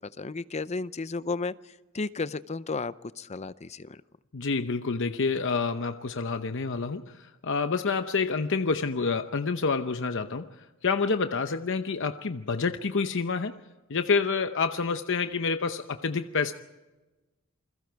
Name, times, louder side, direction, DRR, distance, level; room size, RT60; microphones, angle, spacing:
voice 1, 0.2-4.0, left 3 dB, 30° left, 15 dB, 0.6 m, -33 dB
voice 2, 4.3-13.6 13.9-16.5, left 4 dB, 60° left, 8 dB, 0.8 m, -28 dB
28.5 x 21.5 x 4.7 m, 1.1 s
head